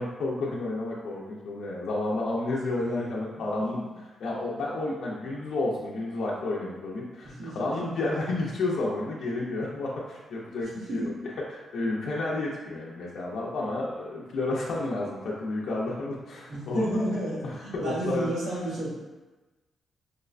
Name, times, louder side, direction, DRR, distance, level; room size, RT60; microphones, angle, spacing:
voice 1, 0.0-3.8 4.2-16.9 17.4-18.3, left 2 dB, 65° left, -5 dB, 0.4 m, -31 dB
voice 2, 2.8-3.2 3.6-3.8 7.2-7.9 10.9-11.2 16.5-18.9, right 1 dB, 75° right, -6 dB, 1.0 m, -32 dB
4.7 x 2.1 x 2.4 m, 1.2 s
wide cardioid pair, 175°, 0 cm